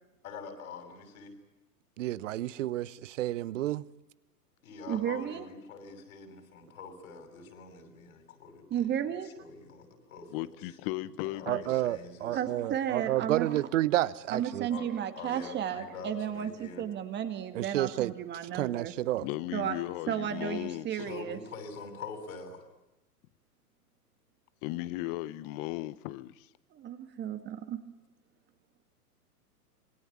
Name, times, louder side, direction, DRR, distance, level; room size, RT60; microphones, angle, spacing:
voice 1, 0.2-1.4 4.6-10.5 11.2-12.5 14.7-16.8 20.9-22.6, left 4 dB, 60° left, 6 dB, 7.2 m, -45 dB
voice 2, 2.0-3.8 11.5-14.7 17.5-18.1 18.5-19.3, right 14 dB, 50° right, 19 dB, 1.1 m, -30 dB
voice 3, 4.9-5.5 8.7-9.3 12.3-13.7 14.3-18.9 19.5-19.7 20.1-21.4 26.7-27.8, right 9 dB, 20° right, 8 dB, 2.1 m, -33 dB
voice 4, 10.3-11.7 19.2-21.2 24.6-26.5, left 17 dB, 35° left, 18 dB, 1.1 m, -36 dB
27.0 x 21.5 x 8.7 m, 0.95 s
hypercardioid pair, 115°, 48 cm